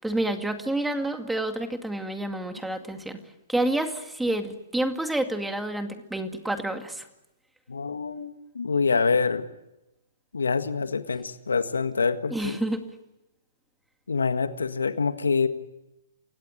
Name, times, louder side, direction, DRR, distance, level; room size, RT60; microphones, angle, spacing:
voice 1, 0.0-3.2 3.5-7.1 12.3-12.9, right 1 dB, 5° right, 7 dB, 2.2 m, -29 dB
voice 2, 7.7-9.5 10.3-12.6 14.1-15.5, left 5 dB, 90° left, 10 dB, 1.7 m, -26 dB
29.5 x 17.0 x 9.9 m, 0.94 s
hypercardioid pair, 135°, 0 cm